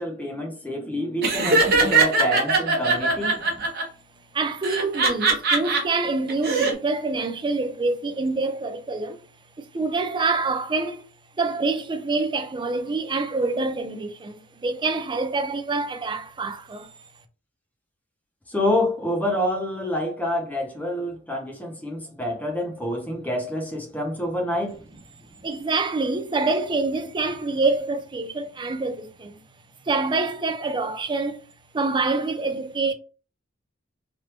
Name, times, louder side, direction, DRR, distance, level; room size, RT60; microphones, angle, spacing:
voice 1, 0.0-3.4 18.5-24.8, left 1 dB, 10° left, 0.9 m, -27 dB
Laughter, 1.2-3.8 4.6-5.8 6.3-6.7, right 3 dB, 55° right, 1.0 m, -20 dB
voice 2, 4.3-9.2 9.6-11.0 11.4-16.9 25.4-29.4 29.9-31.4 31.7-32.9, right 3 dB, 25° right, 0.4 m, -26 dB
3.4 x 2.5 x 3.0 m
head